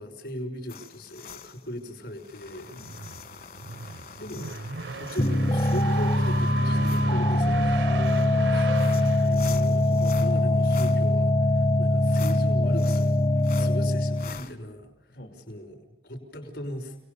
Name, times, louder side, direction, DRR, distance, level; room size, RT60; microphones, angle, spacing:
voice 1, 0.0-2.7 3.0-3.1 4.1-4.5 4.9-8.0 8.4-9.4 10.2-13.1 13.6-14.9 15.5-17.0, left 1 dB, 70° left, 5 dB, 5.7 m, -39 dB
sound 1, 0.7-14.5, left 6 dB, 55° left, 1.8 m, -45 dB
sound 2, 2.5-10.1, right 4 dB, 85° right, 0.9 m, -37 dB
voice 2, 2.7-3.1 9.1-10.4 13.5-13.8 15.1-15.5, left 1 dB, 85° left, -2 dB, 3.6 m, -44 dB
sound 3, 5.2-14.4, left 1 dB, 30° left, 0.8 m, -22 dB
29.5 x 19.5 x 6.9 m, 0.83 s
head